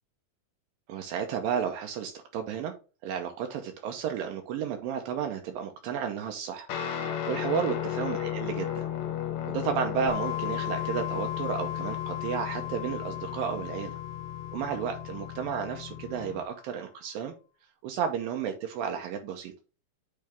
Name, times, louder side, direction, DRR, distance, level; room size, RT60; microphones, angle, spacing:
voice 1, 0.9-2.7 3.0-6.7 7.3-8.8 9.5-14.0 14.5-17.3 17.8-19.5, right 7 dB, 80° right, 4 dB, 2.4 m, -32 dB
Guitar, 6.7-16.4, left 10 dB, 65° left, 1.9 m, -35 dB
sound 1, 10.1-16.6, left 13 dB, 15° right, 1.0 m, -38 dB
8.5 x 3.3 x 3.4 m, 0.33 s
omnidirectional pair, 4.3 m